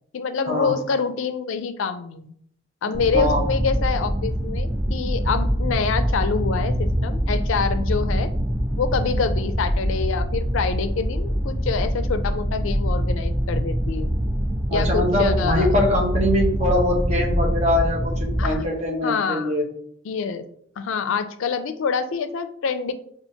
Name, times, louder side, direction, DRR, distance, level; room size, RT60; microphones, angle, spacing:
voice 1, 0.1-2.3 2.8-8.3 8.8-14.1 14.7-15.7 18.4-18.6 19.0-19.5 20.0-20.4 20.8-22.9, left 5 dB, 80° left, 10 dB, 0.4 m, -26 dB
sound 1, 2.9-18.6, equal, 10° right, 0.3 m, -24 dB
voice 2, 2.9-3.4 14.7-19.7, left 1 dB, 35° right, -1 dB, 0.8 m, -23 dB
5.6 x 2.4 x 2.7 m, 0.68 s
head